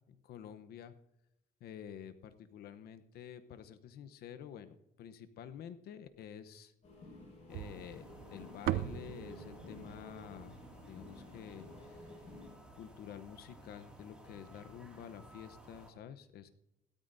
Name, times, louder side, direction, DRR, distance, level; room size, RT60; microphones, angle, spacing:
voice 1, 0.1-0.9 1.6-6.7 7.5-10.6 10.8-12.1 12.8-16.5, left 9 dB, 65° left, 10 dB, 0.9 m, -49 dB
sound 1, 6.8-12.5, left 2 dB, 45° left, 5.3 m, -53 dB
sound 2, 7.5-15.9, right 1 dB, 5° right, 2.3 m, -57 dB
sound 3, 7.5-11.8, right 13 dB, 65° right, 0.5 m, -41 dB
16.5 x 13.0 x 2.7 m, 0.86 s
cardioid pair, 110°, 17 cm